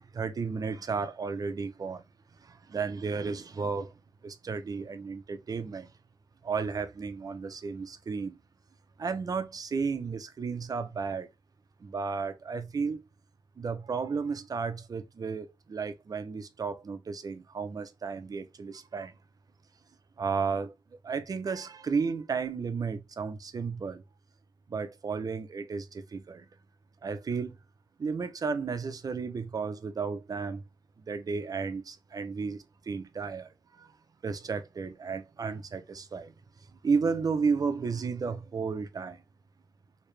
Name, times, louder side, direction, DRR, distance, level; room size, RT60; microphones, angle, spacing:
voice 1, 0.0-2.0 2.4-3.9 4.2-5.9 6.4-8.4 9.0-11.3 11.8-13.0 13.6-19.1 20.2-20.7 21.0-24.0 24.7-26.5 27.0-27.6 28.0-30.6 31.1-33.9 34.2-36.3 36.8-39.2, right 5 dB, 40° right, 0.5 m, -33 dB
3.2 x 2.8 x 3.2 m
wide cardioid pair, 140°, 10 cm